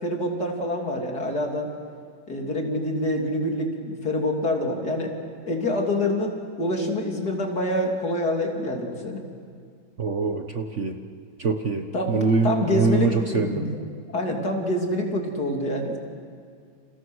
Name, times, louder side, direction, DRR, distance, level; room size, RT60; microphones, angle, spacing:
voice 1, 0.0-1.7 2.3-5.1 5.5-9.2 11.9-12.2 12.4-13.8 14.1-16.0, left 1 dB, 55° left, 1 dB, 3.7 m, -26 dB
voice 2, 10.0-11.0 11.4-13.6, right 4 dB, 45° right, 5 dB, 1.3 m, -24 dB
30.0 x 28.5 x 6.4 m, 2.2 s
omnidirectional pair, 2.1 m